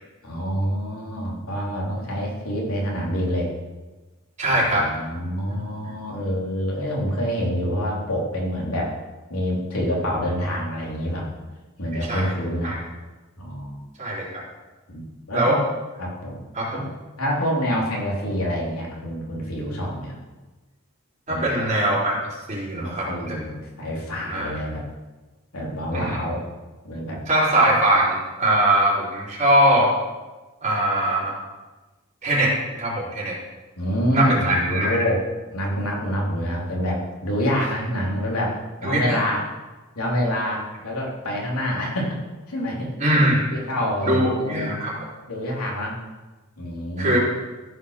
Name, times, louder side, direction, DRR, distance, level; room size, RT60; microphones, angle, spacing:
voice 1, 0.2-3.5 4.5-8.9 9.3-11.3 11.8-12.7 13.4-13.8 14.9-15.6 16.0-16.4 16.7-16.9 17.2-20.2 21.3-21.6 22.7-24.8 25.5-26.4 26.8-27.2 33.8-35.2 35.5-39.4 39.9-42.2 42.5-42.9 43.5-44.8 45.3-46.0 46.6-47.2, equal, 85° left, -3 dB, 3.3 m, -26 dB
voice 2, 4.4-4.8 5.5-5.6 12.1-12.3 12.6-12.8 14.0-14.4 15.3-15.6 16.5-16.8 21.3-22.2 22.5-23.4 24.3-24.5 25.9-26.2 27.3-29.9 30.6-31.3 32.2-32.5 32.8-33.4 34.1-35.0 38.8-39.2 43.0-43.4 44.0-44.9 47.0-47.2, right 1 dB, 35° right, -5 dB, 4.1 m, -21 dB
14.0 x 6.3 x 6.6 m, 1.2 s
head